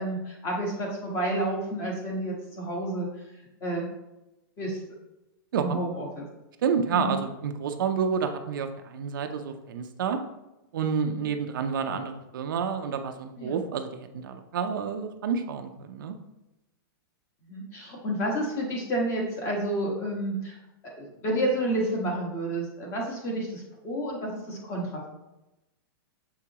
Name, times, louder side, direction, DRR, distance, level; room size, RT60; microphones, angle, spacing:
voice 1, 0.0-3.1 3.6-3.9 4.6-4.8 5.6-6.3 6.9-7.2 11.1-11.3 13.4-13.6 17.5-20.6 20.9-25.1, right 1 dB, 20° left, -1 dB, 1.3 m, -30 dB
voice 2, 6.6-10.2 10.7-16.1, right 6 dB, 60° right, 6 dB, 0.6 m, -29 dB
7.0 x 4.7 x 2.9 m, 0.95 s
supercardioid pair, 170°, 12 cm